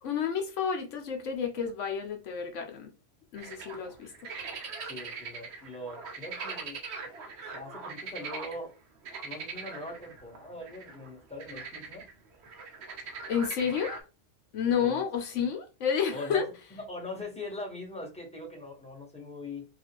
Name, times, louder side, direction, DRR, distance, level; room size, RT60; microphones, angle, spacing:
voice 1, 0.0-2.9 3.3-4.1 13.3-14.0 14.5-16.4, left 7 dB, 75° left, 1.0 m, -30 dB
sound 1, 3.3-8.6 9.0-14.0, right 4 dB, 65° right, 0.9 m, -41 dB
voice 2, 4.9-6.8 7.5-8.7 9.2-12.1 13.6-13.7 14.8-15.0 16.1-16.4 16.7-19.7, left 1 dB, 5° left, 1.0 m, -41 dB
3.6 x 2.4 x 2.9 m
omnidirectional pair, 1.3 m